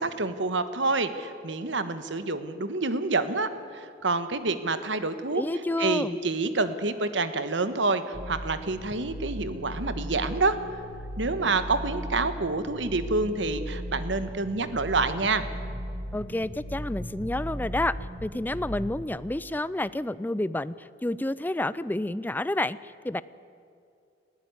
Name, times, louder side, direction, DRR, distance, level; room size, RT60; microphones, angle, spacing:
voice 1, 0.0-5.4 5.8-10.6 11.2-15.4, right 3 dB, 75° right, 11 dB, 1.3 m, -28 dB
voice 2, 5.3-6.2 16.1-17.9 18.2-23.2, left 1 dB, 10° left, 17 dB, 0.4 m, -29 dB
sound 1, 8.1-19.0, equal, 20° right, 2.4 m, -37 dB
20.0 x 14.5 x 9.5 m, 2.5 s
head